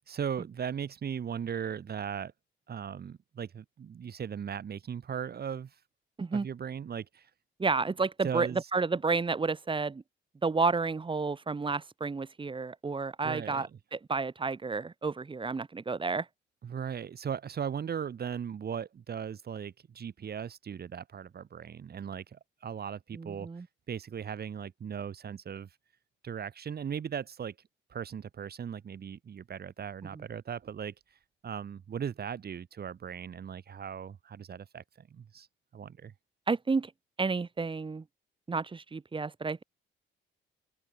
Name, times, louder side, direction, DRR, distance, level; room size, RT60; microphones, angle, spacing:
voice 1, 0.0-2.3 2.7-5.8 6.3-7.3 8.2-8.6 13.2-13.8 16.6-23.5 23.9-25.7 26.2-27.6 27.9-30.9 31.4-35.5 35.7-36.1, right 7 dB, 50° right, 5.5 m, -38 dB
voice 2, 7.6-10.0 10.4-16.3 23.1-23.7 30.1-30.2 36.5-36.9 37.2-38.0 38.5-39.6, right 4 dB, 25° right, 1.5 m, -31 dB
open air
cardioid pair, 90°, 20 cm